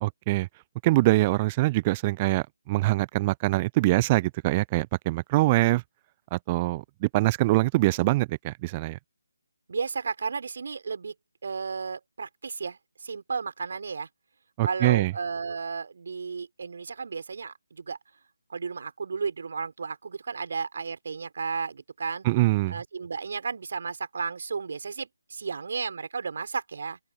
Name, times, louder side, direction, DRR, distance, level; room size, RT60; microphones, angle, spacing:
voice 1, 0.0-0.5 0.8-5.8 6.3-9.0 14.6-15.1 22.2-22.8, right 19 dB, 20° right, 0.6 m, -24 dB
voice 2, 9.7-11.1 11.4-14.1 14.6-18.0 18.5-22.3 22.7-27.0, right 5 dB, 50° right, 4.3 m, -33 dB
open air
figure-of-eight pair, 150°, 0 cm